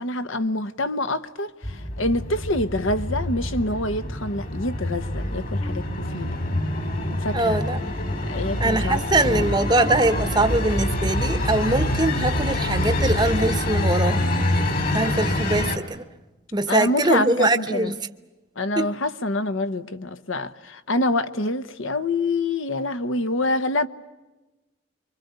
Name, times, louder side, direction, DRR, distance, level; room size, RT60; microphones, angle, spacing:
voice 1, 0.0-6.3 7.2-7.6 8.3-9.5 16.7-17.9 18.6-23.9, left 2 dB, 80° left, 1.1 m, -26 dB
sound 1, 1.6-15.8, left 1 dB, 45° left, 2.8 m, -26 dB
voice 2, 7.3-7.8 8.6-14.2 14.9-16.0 16.5-18.0 18.8-18.9, right 2 dB, 20° right, 0.8 m, -22 dB
26.0 x 24.5 x 8.2 m
head